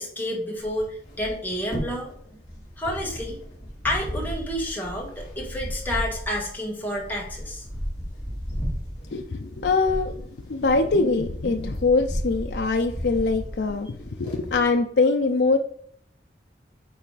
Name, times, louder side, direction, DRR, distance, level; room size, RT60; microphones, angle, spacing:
voice 1, 0.0-2.1 2.8-3.4 3.8-7.6, left 1 dB, 10° left, -2 dB, 1.7 m, -30 dB
sound 1, 0.6-14.7, equal, 30° left, 2.8 m, -35 dB
voice 2, 9.1-15.6, left 3 dB, 70° left, 4 dB, 0.5 m, -23 dB
9.2 x 3.3 x 4.0 m, 0.65 s
head